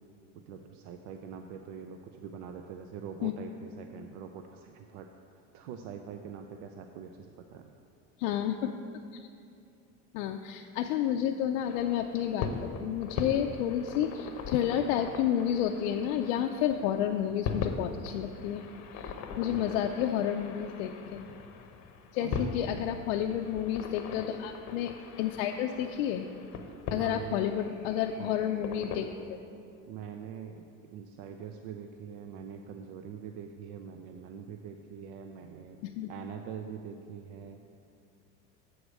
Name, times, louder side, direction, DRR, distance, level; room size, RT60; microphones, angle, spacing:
voice 1, 0.4-5.1 5.5-7.7 19.5-19.9 22.2-22.4 23.2-23.4 27.0-27.5 28.2-28.4 29.9-35.8 36.1-37.6, right 7 dB, 65° right, 5 dB, 0.6 m, -44 dB
voice 2, 8.2-8.7 10.1-18.7 19.0-21.2 22.1-26.3 26.9-29.1 36.0-36.1, left 10 dB, 80° left, 4 dB, 0.5 m, -30 dB
sound 1, 11.6-29.0, left 5 dB, 45° left, 0.8 m, -40 dB
7.8 x 4.8 x 6.3 m, 2.5 s
supercardioid pair, 115°, 39 cm